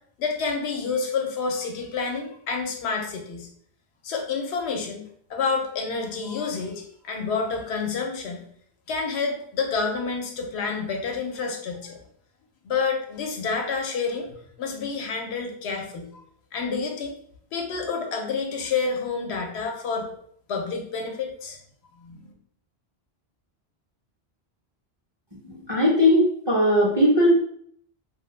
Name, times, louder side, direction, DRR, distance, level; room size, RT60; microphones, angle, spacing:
voice 1, 0.2-3.5 4.0-5.0 5.3-8.4 8.9-12.0 12.6-14.3 14.6-16.1 16.5-17.1 17.5-20.1 20.5-21.6 22.0-22.3, left 4 dB, 85° left, 2 dB, 0.8 m, -29 dB
voice 2, 25.4-27.3, left 1 dB, 35° right, -5 dB, 0.5 m, -19 dB
2.2 x 2.0 x 3.1 m, 0.64 s
omnidirectional pair, 1.1 m